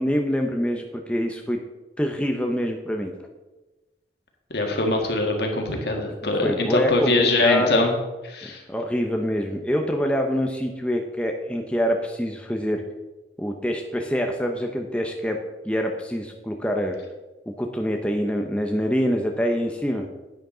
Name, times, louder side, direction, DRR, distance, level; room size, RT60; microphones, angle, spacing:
voice 1, 0.0-1.6 2.0-3.1 6.2-7.8 8.4-12.8 13.4-15.4 15.6-17.0 17.6-20.1, equal, 5° left, 2 dB, 0.7 m, -25 dB
voice 2, 4.5-7.9 8.3-8.6, left 2 dB, 65° left, 2 dB, 1.9 m, -23 dB
10.5 x 9.4 x 3.9 m, 1.1 s
head